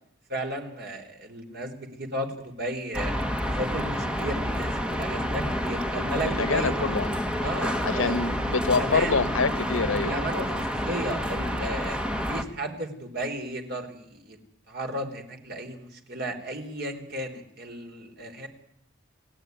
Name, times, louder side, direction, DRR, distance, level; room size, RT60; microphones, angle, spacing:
voice 1, 0.3-7.0 7.4-8.2 8.7-9.2 10.0-14.4 14.7-18.5, right 1 dB, 50° right, 4.0 m, -34 dB
sound 1, 2.9-12.4, equal, 5° right, 1.6 m, -29 dB
voice 2, 6.2-7.1 7.8-10.2, left 4 dB, 90° left, 1.2 m, -26 dB
29.5 x 17.0 x 9.5 m
head